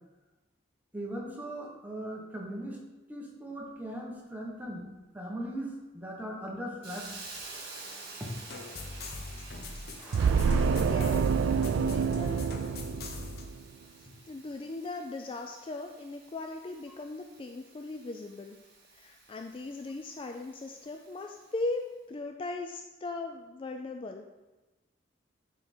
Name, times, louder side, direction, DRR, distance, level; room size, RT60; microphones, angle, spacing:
voice 1, 0.9-2.8 3.1-4.8 5.1-7.1 8.2-8.3 9.9-11.2 13.1-13.3, right 1 dB, 10° right, -2 dB, 1.3 m, -39 dB
Hiss, 6.8-21.6, right 3 dB, 55° right, 1.7 m, -50 dB
sound 1, 8.5-13.5, left 2 dB, 60° left, 0.9 m, -42 dB
sound 2, 10.1-13.6, right 6 dB, 80° right, 0.3 m, -27 dB
voice 2, 10.8-11.2 11.6-12.5 14.0-18.6 18.9-24.3, left 2 dB, 30° left, 4 dB, 0.3 m, -39 dB
9.7 x 3.7 x 4.4 m, 1.1 s
head